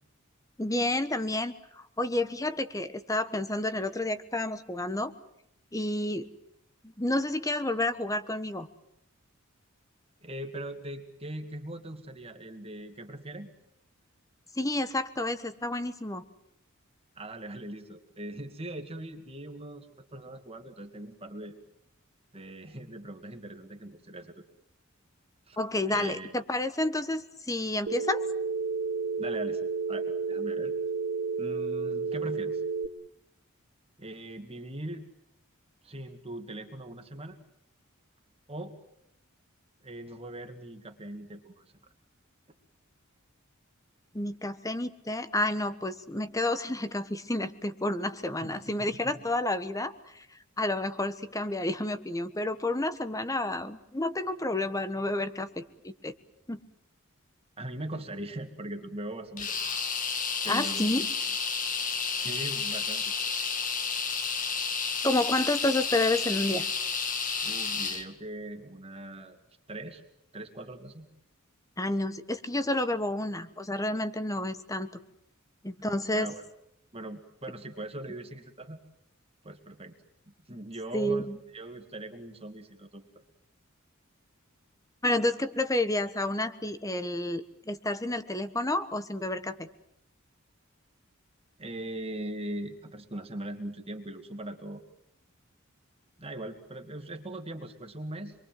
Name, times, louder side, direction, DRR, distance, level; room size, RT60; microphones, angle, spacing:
voice 1, 0.6-1.5 2.0-5.1 5.7-6.3 7.0-8.7 14.6-16.2 25.6-28.2 44.1-50.2 50.6-56.1 56.5-56.6 60.5-61.0 65.0-66.6 71.8-74.9 75.6-76.3 80.9-81.4 85.0-89.7, left 1 dB, 15° left, 12 dB, 1.3 m, -30 dB
voice 2, 10.2-13.5 17.2-21.5 22.3-24.4 25.5-25.6 25.9-26.4 29.2-30.8 31.4-32.6 34.0-35.1 35.8-37.4 38.5-38.8 39.8-41.6 48.4-49.3 57.6-59.5 60.4-61.1 62.1-63.1 67.4-69.4 69.7-70.0 70.3-71.1 76.1-76.4 76.9-78.8 79.4-80.0 80.5-83.1 91.6-94.8 96.2-98.4, right 1 dB, 30° right, 5 dB, 2.1 m, -40 dB
Telephone, 27.9-32.9, right 4 dB, 80° right, 1.1 m, -31 dB
sound 1, 59.4-68.1, left 5 dB, 40° left, 1.9 m, -31 dB
27.0 x 23.0 x 7.7 m, 0.78 s
head